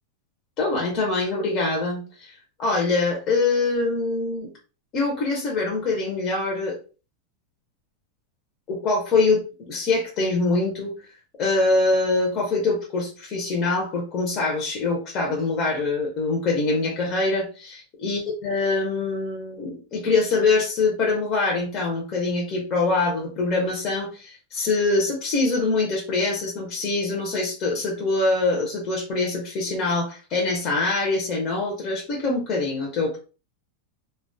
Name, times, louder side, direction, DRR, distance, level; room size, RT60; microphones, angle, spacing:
voice 1, 0.6-4.5 4.9-6.8 8.7-10.9 11.4-33.2, left 3 dB, 30° left, 0 dB, 0.6 m, -24 dB
2.2 x 2.1 x 2.5 m, 0.34 s
supercardioid pair, 160°, 0 cm